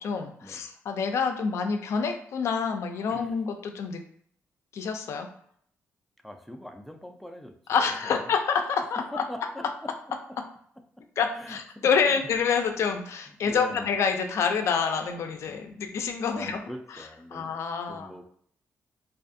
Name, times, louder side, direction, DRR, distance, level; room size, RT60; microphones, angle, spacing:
voice 1, 0.0-4.0 4.7-5.3 7.7-9.2 11.2-16.6 17.3-18.1, left 6 dB, 70° left, 6 dB, 0.4 m, -27 dB
voice 2, 6.2-8.3 9.1-9.6 10.1-10.4 11.0-11.1 11.4-12.2 13.4-13.9 15.5-15.6 16.3-17.5 17.9-18.2, equal, ahead, 4 dB, 0.4 m, -42 dB
2.4 x 2.4 x 2.5 m, 0.63 s
cardioid pair, 70°, 5 cm